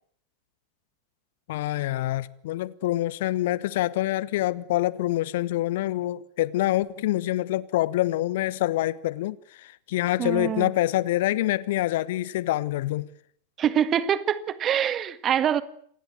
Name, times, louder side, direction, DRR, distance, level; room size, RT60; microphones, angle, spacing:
voice 1, 1.5-13.1, left 15 dB, 55° left, 1.0 m, -26 dB
voice 2, 10.2-10.7 13.6-15.6, right 9 dB, 30° right, 1.8 m, -24 dB
27.5 x 19.5 x 7.9 m
figure-of-eight pair, 90°, 0 cm